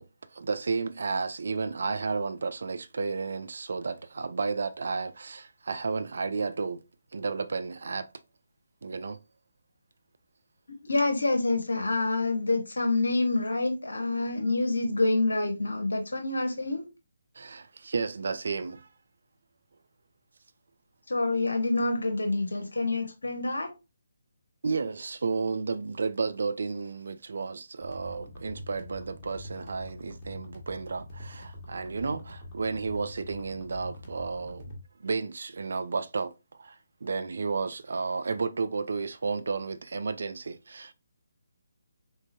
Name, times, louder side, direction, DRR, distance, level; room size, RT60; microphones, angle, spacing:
voice 1, 0.0-6.8 7.1-8.1 8.8-9.2 17.4-18.9 24.6-34.7 35.0-36.3 36.6-40.9, right 4 dB, 60° right, 0.3 m, -32 dB
voice 2, 10.7-16.9 21.1-23.7, left 2 dB, 70° left, 0.7 m, -27 dB
sound 1, 27.8-34.8, left 1 dB, 20° left, 1.3 m, -44 dB
3.7 x 3.5 x 2.6 m
figure-of-eight pair, 145°, 0 cm